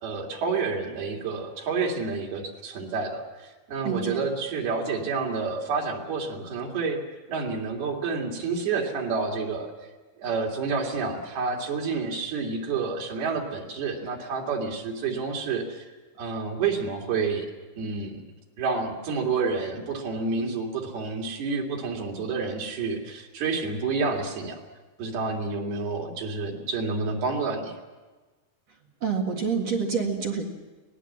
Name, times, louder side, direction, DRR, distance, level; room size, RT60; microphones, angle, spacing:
voice 1, 0.0-7.0 7.3-9.7 10.2-15.9 16.2-17.5 17.8-18.2 18.6-24.6 25.0-27.8, right 4 dB, 80° right, 0 dB, 4.8 m, -29 dB
voice 2, 3.8-4.2 29.0-30.5, right 5 dB, 50° right, 1 dB, 2.8 m, -27 dB
24.0 x 19.0 x 7.5 m, 1.3 s
omnidirectional pair, 4.4 m